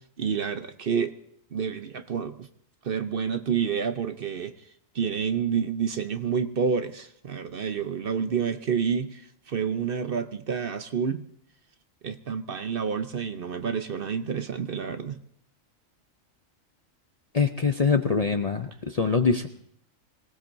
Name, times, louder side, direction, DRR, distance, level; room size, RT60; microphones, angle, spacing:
voice 1, 0.2-1.1 1.5-2.5 2.8-11.3 12.0-15.2, right 6 dB, 50° right, 9 dB, 0.9 m, -29 dB
voice 2, 17.3-19.5, left 5 dB, 40° left, 7 dB, 0.6 m, -24 dB
25.0 x 19.0 x 2.7 m, 0.66 s
omnidirectional pair, 1.4 m